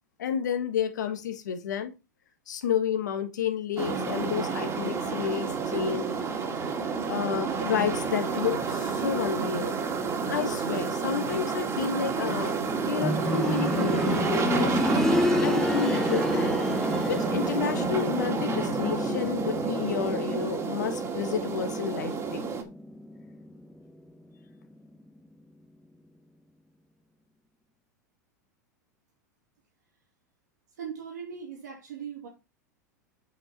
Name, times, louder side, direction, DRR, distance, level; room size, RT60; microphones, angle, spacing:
voice 1, 0.2-1.9 2.5-6.1 7.1-9.8 10.3-12.5 12.8-14.8 15.4-16.6 17.1-22.4, left 8 dB, 80° left, 1.4 m, -30 dB
sound 1, 3.8-22.6, right 5 dB, 30° right, 2.2 m, -30 dB
sound 2, 13.0-23.8 24.1-24.2 25.1-25.2, left 1 dB, 5° left, 0.5 m, -30 dB
voice 2, 30.8-32.3, right 7 dB, 80° right, 3.5 m, -39 dB
8.7 x 5.3 x 4.1 m
hypercardioid pair, 100°, 10 cm